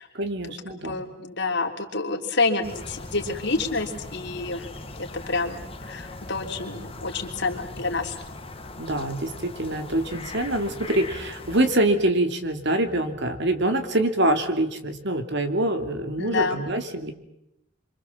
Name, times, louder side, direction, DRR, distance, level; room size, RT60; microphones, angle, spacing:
voice 1, 0.1-1.0 8.8-17.1, right 1 dB, 60° right, 7 dB, 2.8 m, -25 dB
voice 2, 0.7-4.7 5.0-8.2 16.2-16.6, left 3 dB, 60° left, 3 dB, 3.3 m, -28 dB
sound 1, 2.6-11.7, left 2 dB, 30° left, 2.1 m, -40 dB
27.5 x 25.0 x 7.3 m, 0.82 s
head